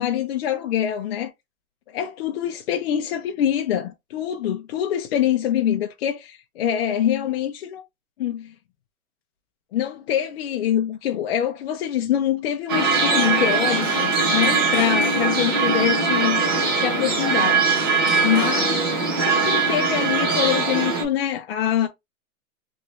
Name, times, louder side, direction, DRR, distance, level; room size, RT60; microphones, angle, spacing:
voice 1, 0.0-1.3 1.9-7.8 8.2-8.5 9.7-17.7 18.2-21.9, left 10 dB, 50° left, 0.5 m, -25 dB
sound 1, 12.7-21.0, right 4 dB, 20° right, 0.3 m, -21 dB
3.1 x 2.6 x 3.0 m
hypercardioid pair, 150°, 43 cm